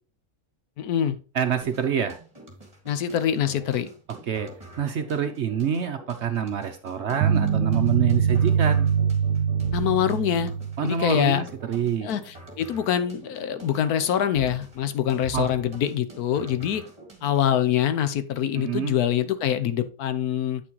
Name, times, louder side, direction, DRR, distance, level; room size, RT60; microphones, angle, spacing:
voice 1, 0.8-1.2 2.9-3.9 9.7-10.5 10.8-11.4 12.0-16.8 17.2-20.6, left 10 dB, 75° left, 11 dB, 1.2 m, -24 dB
voice 2, 1.3-2.2 4.3-4.5 4.8-8.9 10.8-12.1 15.3-15.5 18.6-19.0, right 7 dB, 60° right, 7 dB, 0.8 m, -26 dB
sound 1, 1.6-17.6, right 2 dB, 25° right, 1.9 m, -46 dB
sound 2, 7.2-11.4, right 7 dB, 80° right, 1.1 m, -23 dB
8.4 x 6.0 x 3.0 m, 0.38 s
omnidirectional pair, 1.6 m